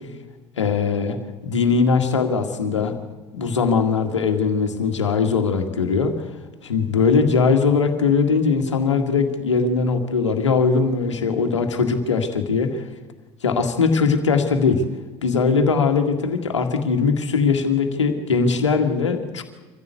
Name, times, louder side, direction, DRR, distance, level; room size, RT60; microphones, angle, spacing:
voice 1, 0.6-1.2 1.4-2.9 3.3-6.3 6.6-12.8 13.4-14.8 15.2-19.4, left 5 dB, 90° left, 5 dB, 2.1 m, -20 dB
25.0 x 15.0 x 8.4 m, 1.3 s
hypercardioid pair, 70°, 15 cm